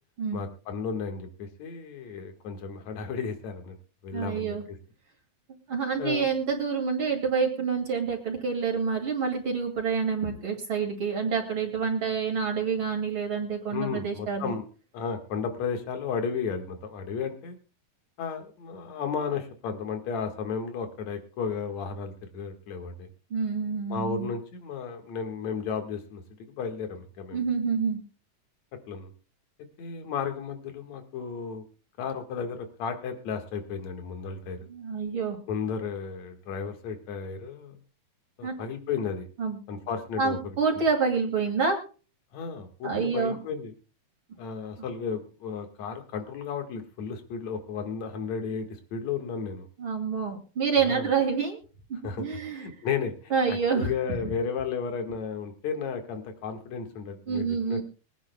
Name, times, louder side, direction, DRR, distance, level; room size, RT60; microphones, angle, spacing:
voice 1, 0.3-3.7 4.0-4.8 6.0-6.3 13.7-14.6 14.9-17.6 18.2-23.1 23.9-27.4 28.9-29.1 29.8-31.6 32.0-34.6 35.5-37.8 38.4-39.3 39.7-40.6 42.3-43.7 44.4-48.7 48.9-49.7 50.8-51.1 52.0-52.3 52.5-57.8, left 6 dB, 65° left, 6 dB, 3.0 m, -33 dB
voice 2, 4.1-4.6 5.7-14.5 23.3-24.3 27.3-28.0 34.7-35.4 38.4-38.5 39.4-39.6 40.2-41.8 42.8-43.4 49.8-51.6 51.9-52.7 53.3-53.9 57.3-57.8, right 5 dB, 45° right, 2 dB, 2.9 m, -27 dB
23.5 x 10.0 x 2.3 m, 0.36 s
omnidirectional pair, 3.5 m